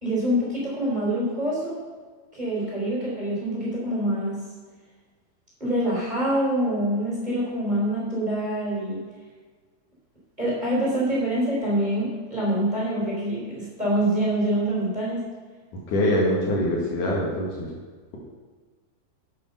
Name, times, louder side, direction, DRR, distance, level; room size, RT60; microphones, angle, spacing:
voice 1, 0.0-1.8 2.3-4.4 5.6-9.1 10.4-15.2, right 1 dB, 10° right, -6 dB, 3.6 m, -25 dB
voice 2, 15.9-17.7, left 1 dB, 65° left, -3 dB, 3.1 m, -23 dB
9.6 x 7.0 x 6.6 m, 1.5 s
omnidirectional pair, 4.1 m